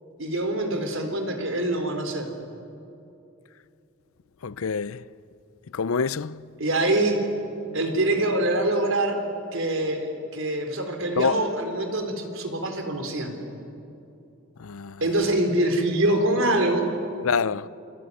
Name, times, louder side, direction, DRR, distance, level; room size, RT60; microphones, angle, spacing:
voice 1, 0.2-2.3 6.6-7.2 7.7-9.2 9.5-13.4 15.0-16.9, right 1 dB, 70° right, 3.9 m, -24 dB
voice 2, 4.4-5.0 5.7-6.4 11.2-11.4 14.6-15.0 17.2-17.7, left 5 dB, 80° left, 0.6 m, -26 dB
28.5 x 21.0 x 9.7 m
head